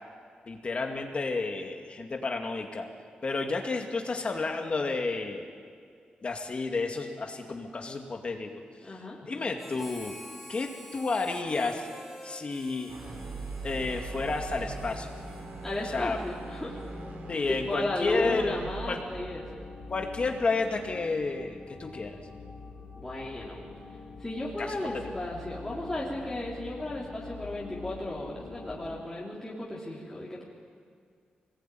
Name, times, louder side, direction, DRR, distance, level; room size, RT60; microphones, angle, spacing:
voice 1, 0.5-2.9 3.2-5.4 6.2-8.5 9.2-10.2 10.5-11.9 12.2-12.9 13.6-15.1 15.8-16.2 17.3-18.6 18.9-19.0 19.9-22.2 24.6-24.8 25.0-25.2, left 3 dB, 40° left, 3 dB, 2.3 m, -31 dB
voice 2, 8.8-9.2 15.6-16.8 17.5-19.6 23.0-23.6 24.2-30.4, left 1 dB, 15° left, -6 dB, 3.5 m, -34 dB
Harmonica, 9.6-17.3, equal, 5° right, 4.7 m, -50 dB
sound 1, 12.9-21.0, right 4 dB, 60° right, 3.7 m, -42 dB
sound 2, 13.0-29.0, left 4 dB, 85° left, 4.3 m, -45 dB
25.0 x 20.0 x 9.4 m, 2.1 s
wide cardioid pair, 135°, 3 cm